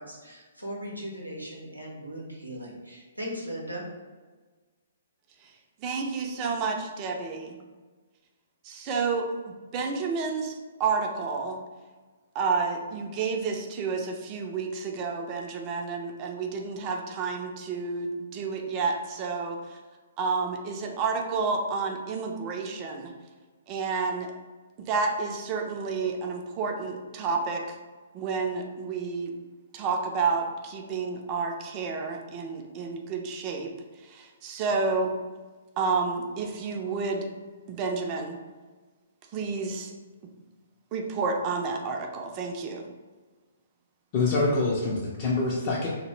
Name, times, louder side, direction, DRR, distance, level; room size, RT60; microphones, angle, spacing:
voice 1, 0.0-3.8, equal, 90° right, -2 dB, 0.6 m, -38 dB
voice 2, 5.8-7.6 8.6-11.6 12.3-19.6 20.2-23.1 23.7-24.3 24.8-27.8 28.1-29.3 29.7-33.7 34.0-35.1 35.8-37.3 37.7-38.4 39.3-39.9 40.9-42.8, right 4 dB, 30° right, 2 dB, 0.3 m, -30 dB
voice 3, 44.1-45.9, left 3 dB, 35° left, -5 dB, 0.4 m, -25 dB
2.0 x 2.0 x 3.1 m, 1.4 s
figure-of-eight pair, 120°, 0 cm